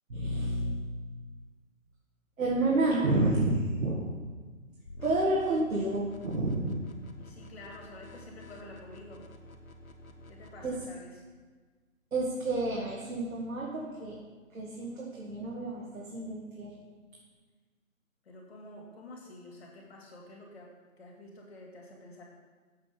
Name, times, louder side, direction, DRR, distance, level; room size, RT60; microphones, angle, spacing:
voice 1, 0.1-0.8 2.4-4.0 5.0-6.8 10.6-10.7 12.1-14.2 14.5-16.7, right 2 dB, 75° right, -4 dB, 1.9 m, -30 dB
sound 1, 4.9-10.9, left 1 dB, 90° left, 1.3 m, -49 dB
voice 2, 7.2-9.2 10.3-11.1 18.3-20.7 21.0-22.2, left 2 dB, 50° left, -2 dB, 2.3 m, -49 dB
7.5 x 7.1 x 5.1 m, 1.4 s
hypercardioid pair, 160°, 41 cm